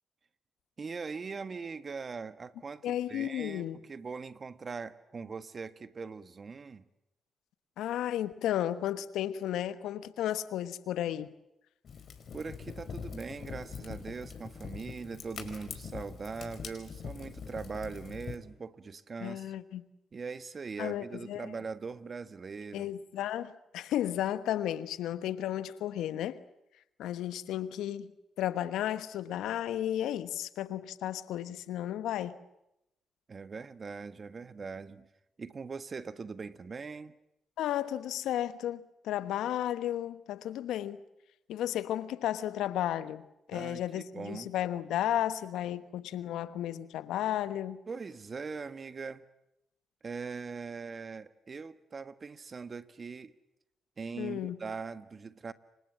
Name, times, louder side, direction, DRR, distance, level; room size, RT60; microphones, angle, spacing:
voice 1, 0.8-6.8 12.3-19.5 20.1-22.9 33.3-35.1 35.4-37.1 43.5-44.5 47.9-49.2 50.0-53.3 54.0-55.5, right 5 dB, 45° right, 1.5 m, -41 dB
voice 2, 2.8-3.8 7.8-11.3 19.2-19.9 20.8-21.5 22.7-26.4 27.0-28.1 28.4-32.4 37.6-41.0 41.5-47.8 54.2-54.6, left 12 dB, 75° left, 1.1 m, -33 dB
Fire, 11.8-18.4, left 6 dB, 60° left, 4.8 m, -43 dB
29.0 x 25.0 x 7.6 m
hypercardioid pair, 45°, 0 cm